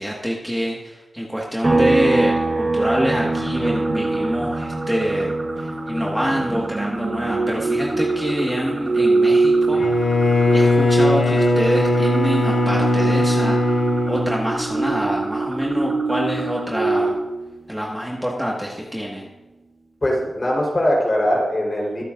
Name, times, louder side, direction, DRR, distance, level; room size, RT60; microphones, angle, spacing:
voice 1, 0.0-9.8 10.5-13.6 14.1-17.2 17.7-19.3, equal, 5° right, -3 dB, 1.6 m, -26 dB
sound 1, 1.6-15.2 15.5-17.7, right 2 dB, 35° right, 1.5 m, -27 dB
sound 2, 3.0-17.1, right 3 dB, 50° right, 4.3 m, -24 dB
Bowed string instrument, 9.7-15.1, left 2 dB, 80° left, 1.8 m, -20 dB
voice 2, 20.0-22.0, equal, 30° left, -2 dB, 3.9 m, -21 dB
23.5 x 8.3 x 2.6 m, 1.1 s
wide cardioid pair, 105°, 0 cm